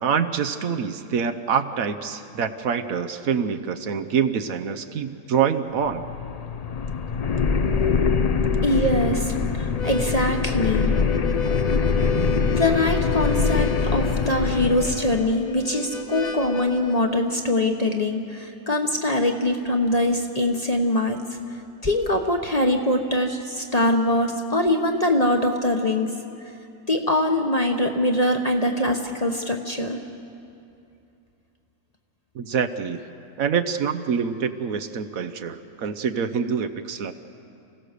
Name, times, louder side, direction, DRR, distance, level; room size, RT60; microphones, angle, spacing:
voice 1, 0.0-6.0 32.3-33.0 33.4-37.1, right 7 dB, 65° right, 8 dB, 1.2 m, -25 dB
sound 1, 5.8-15.4, left 5 dB, 85° left, 0.3 m, -24 dB
voice 2, 8.6-9.3 9.8-10.9 12.6-21.2 21.8-26.1 26.9-30.0, left 1 dB, 30° left, 3 dB, 1.0 m, -23 dB
Harmonica, 9.6-17.0, left 3 dB, 60° left, 1.5 m, -32 dB
28.5 x 16.5 x 6.7 m, 2.6 s
omnidirectional pair, 1.6 m